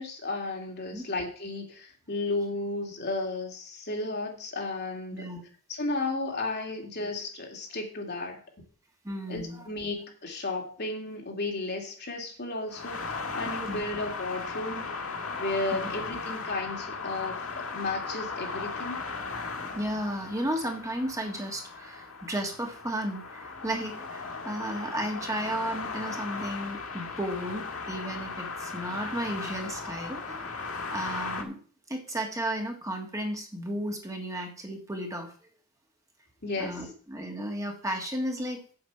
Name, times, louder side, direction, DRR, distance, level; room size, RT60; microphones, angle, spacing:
voice 1, 0.0-5.3 5.7-8.4 9.3-14.9 15.4-19.0 36.4-36.8, left 2 dB, 50° left, 1 dB, 2.5 m, -33 dB
voice 2, 9.0-9.6 13.7-13.8 15.7-15.8 19.5-30.6 30.9-31.6 31.9-35.3 36.6-38.7, right 1 dB, 15° right, 2 dB, 1.5 m, -34 dB
sound 1, 12.7-31.4, left 4 dB, 75° left, 1.6 m, -37 dB
8.0 x 7.9 x 5.6 m, 0.43 s
head